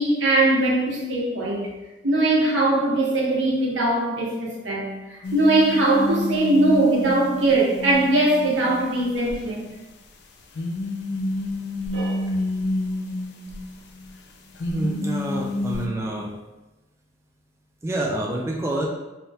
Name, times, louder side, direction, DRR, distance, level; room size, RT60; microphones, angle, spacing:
voice 1, 0.0-1.7 2.0-9.7 11.9-12.2, right 2 dB, 80° right, -3 dB, 1.0 m, -21 dB
sound 1, 5.2-9.4 10.6-14.2 14.5-15.9, left 2 dB, 60° left, 0.5 m, -29 dB
voice 2, 14.7-16.3 17.8-18.9, right 1 dB, 15° right, -1 dB, 0.3 m, -27 dB
3.4 x 2.3 x 4.1 m, 1.1 s
head